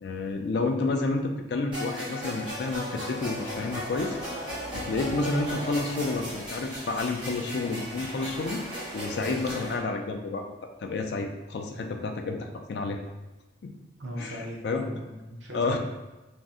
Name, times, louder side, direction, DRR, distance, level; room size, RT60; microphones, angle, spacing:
voice 1, 0.0-4.2 4.7-8.6 8.9-10.5 10.8-13.0 13.6-13.8 14.2-14.9 15.5-15.8, left 3 dB, 60° left, 4 dB, 0.3 m, -30 dB
sound 1, 1.7-9.7, equal, 25° right, 1.1 m, -37 dB
sound 2, 3.1-9.8, equal, 35° left, 0.7 m, -43 dB
voice 2, 14.0-15.8, equal, 70° right, -2 dB, 0.5 m, -38 dB
2.6 x 2.0 x 3.5 m, 1.1 s
head